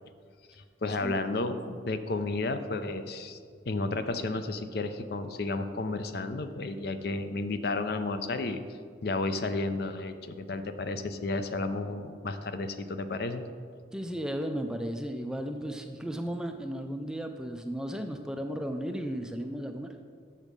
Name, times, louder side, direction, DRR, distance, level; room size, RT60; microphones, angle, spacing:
voice 1, 0.8-3.4 3.7-8.6 9.0-13.4, left 3 dB, 55° left, 9 dB, 0.5 m, -32 dB
voice 2, 13.9-20.0, equal, 5° right, 5 dB, 0.3 m, -35 dB
7.2 x 6.5 x 5.2 m, 2.1 s
head